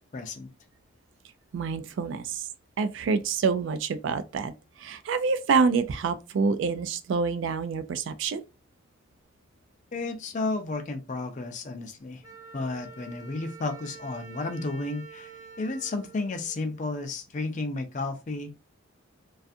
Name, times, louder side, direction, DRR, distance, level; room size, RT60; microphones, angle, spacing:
voice 1, 0.1-0.5 9.9-12.2 12.5-15.3 15.6-18.5, left 3 dB, 35° left, 0.4 m, -32 dB
voice 2, 1.5-2.4 2.8-4.5 4.8-8.4, right 5 dB, 65° right, 0.3 m, -27 dB
Wind instrument woodwind instrument, 12.2-17.0, right 5 dB, 20° right, 0.6 m, -47 dB
2.5 x 2.3 x 2.5 m
head